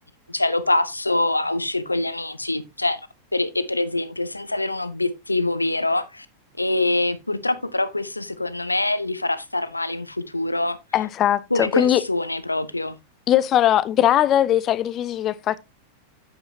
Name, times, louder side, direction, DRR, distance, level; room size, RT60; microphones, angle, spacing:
voice 1, 0.3-3.0 3.3-6.3 6.6-10.8 11.5-13.0, left 2 dB, 85° left, 0.9 m, -24 dB
voice 2, 10.9-12.0 13.3-15.6, left 11 dB, 30° left, 0.7 m, -20 dB
8.9 x 8.7 x 2.7 m
figure-of-eight pair, 90°, 0 cm